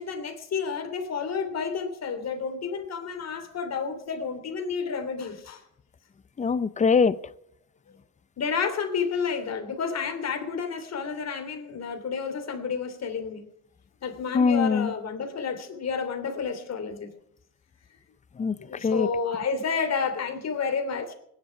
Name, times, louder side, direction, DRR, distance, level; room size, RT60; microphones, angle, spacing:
voice 1, 0.0-5.6 8.4-13.5 14.0-17.1 18.7-21.1, left 5 dB, 45° left, 3.2 m, -30 dB
voice 2, 6.4-7.2 14.3-14.9 18.4-19.1, left 5 dB, 20° left, 0.6 m, -23 dB
19.5 x 11.0 x 5.9 m
cardioid pair, 125°, 37 cm